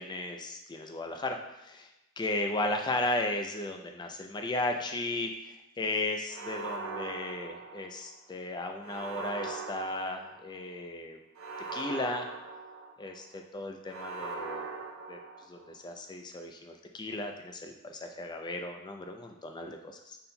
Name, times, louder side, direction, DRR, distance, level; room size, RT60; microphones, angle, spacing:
voice 1, 0.0-1.9 2.2-11.2 11.7-12.3 13.0-15.2 15.5-20.2, left 2 dB, 20° left, 4 dB, 0.4 m, -35 dB
sound 1, 6.3-8.2 8.8-10.6 11.3-13.2 13.9-15.8, right 4 dB, 70° right, 0.5 m, -40 dB
5.4 x 4.2 x 2.2 m, 0.92 s
head